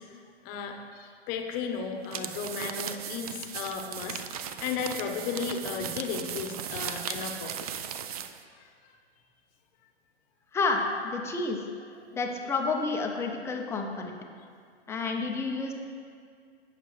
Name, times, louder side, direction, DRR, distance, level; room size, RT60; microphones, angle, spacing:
voice 1, 0.0-7.6 8.6-8.9, left 5 dB, 25° left, 4 dB, 1.0 m, -35 dB
sound 1, 2.0-8.4, right 9 dB, 35° right, 0.4 m, -37 dB
voice 2, 10.5-11.6 12.1-14.2 14.9-15.7, left 3 dB, 10° left, 2 dB, 0.6 m, -30 dB
16.5 x 6.7 x 3.2 m, 2.2 s
hypercardioid pair, 130°, 33 cm